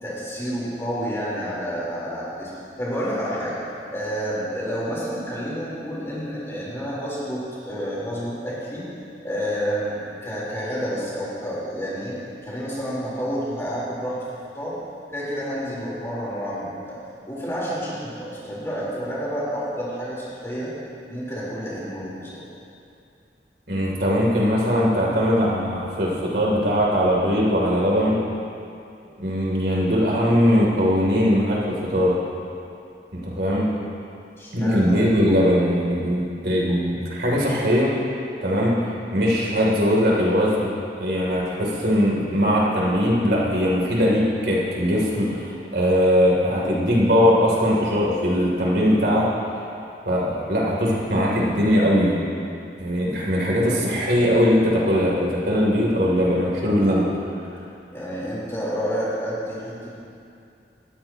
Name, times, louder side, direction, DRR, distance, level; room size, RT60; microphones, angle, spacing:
voice 1, 0.0-2.5 2.8-3.6 3.9-8.9 9.2-12.2 12.5-14.8 15.1-17.0 17.3-20.8 21.1-22.4 34.4-35.4 57.9-60.0, equal, 15° left, -8 dB, 4.1 m, -29 dB
voice 2, 23.7-28.2 29.2-32.2 33.1-33.7 34.5-37.9 38.4-38.8 39.1-40.7 41.0-49.3 50.0-52.2 52.8-57.1, equal, 70° right, -4 dB, 3.2 m, -20 dB
19.5 x 15.0 x 3.0 m, 2.5 s
head